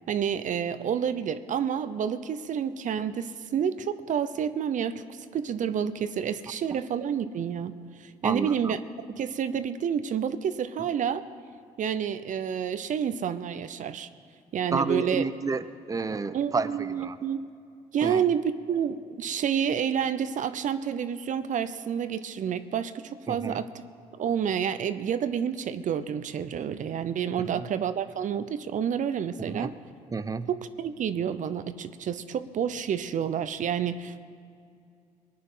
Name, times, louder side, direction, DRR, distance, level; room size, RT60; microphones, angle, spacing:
voice 1, 0.1-7.7 8.0-8.8 9.2-11.2 11.8-14.1 14.5-15.3 16.3-17.5 17.9-23.7 24.1-29.7 30.5-34.2, right 8 dB, 55° right, 12 dB, 0.7 m, -29 dB
voice 2, 8.2-8.7 14.7-17.2 18.0-18.2 23.3-23.6 27.5-27.7 29.5-29.7 30.1-30.5, right 4 dB, 25° right, 13 dB, 0.7 m, -30 dB
19.5 x 9.5 x 5.6 m, 2.4 s
supercardioid pair, 60°, 15 cm